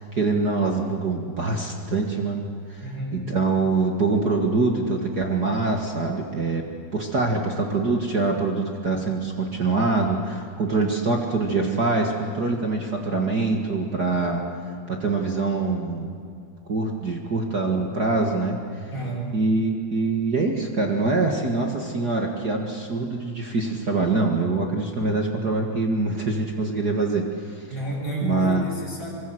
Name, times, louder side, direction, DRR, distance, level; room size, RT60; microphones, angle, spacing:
voice 1, 0.0-2.4 2.7-2.8 3.1-6.7 6.9-14.4 14.9-16.1 16.7-18.6 19.3-27.7 28.2-28.6, right 3 dB, 50° right, 2 dB, 1.1 m, -24 dB
voice 2, 2.8-3.2 18.9-19.3 27.7-29.1, right 1 dB, 10° left, -4 dB, 6.6 m, -30 dB
25.5 x 24.0 x 7.9 m, 2.4 s
omnidirectional pair, 4.7 m